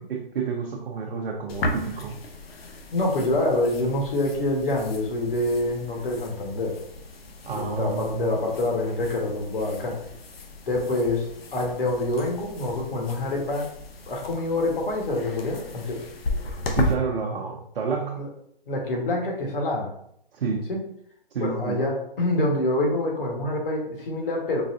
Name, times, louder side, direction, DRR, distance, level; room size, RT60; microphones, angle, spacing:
voice 1, 0.0-2.2 7.5-8.3 16.7-18.3 20.3-20.7 21.3-21.8, right 5 dB, 65° right, 0 dB, 0.7 m, -29 dB
sound 1, 1.5-16.9, left 2 dB, 85° left, 0.7 m, -35 dB
voice 2, 2.9-6.8 7.5-9.9 10.7-13.7 14.1-16.1 18.2-18.3 18.7-19.9 20.7-20.8 21.4-24.6, left 2 dB, 70° left, -1 dB, 1.3 m, -26 dB
3.9 x 2.3 x 2.6 m, 0.71 s
hypercardioid pair, 150°, 29 cm